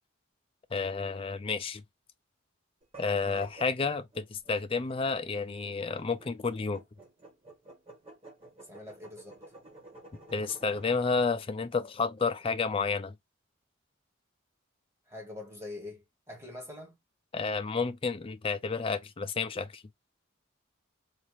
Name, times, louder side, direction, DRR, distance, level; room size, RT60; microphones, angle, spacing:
voice 1, 0.7-1.8 3.0-6.8 10.3-13.1 17.3-19.8, left 4 dB, 25° left, 0.4 m, -31 dB
sound 1, 2.8-11.0, right 2 dB, 30° right, 1.7 m, -51 dB
voice 2, 8.6-9.4 15.1-17.0, left 2 dB, 15° right, 1.3 m, -44 dB
4.1 x 2.5 x 2.9 m
head